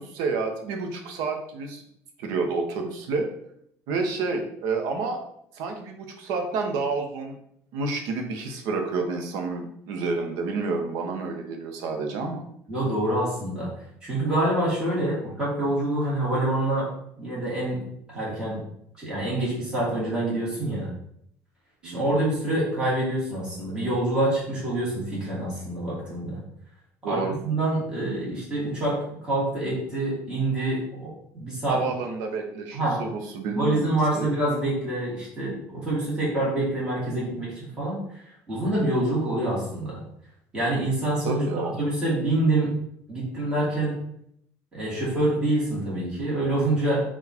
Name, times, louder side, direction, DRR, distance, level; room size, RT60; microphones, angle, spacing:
voice 1, 0.0-1.8 2.2-3.3 3.9-5.2 5.5-7.4 7.7-12.4 21.8-22.1 27.0-27.4 31.7-34.3 41.2-41.7, right 4 dB, 75° right, 4 dB, 0.7 m, -29 dB
voice 2, 12.7-13.7 14.0-16.9 17.2-17.8 18.1-18.6 19.0-20.9 21.8-26.4 27.0-29.0 29.2-30.8 31.3-31.8 32.7-33.0 33.5-38.0 38.5-40.0 40.5-42.7 43.1-44.0 44.7-47.0, right 1 dB, 15° right, -7 dB, 1.6 m, -26 dB
4.0 x 2.4 x 4.2 m, 0.71 s
cardioid pair, 165°, 6 cm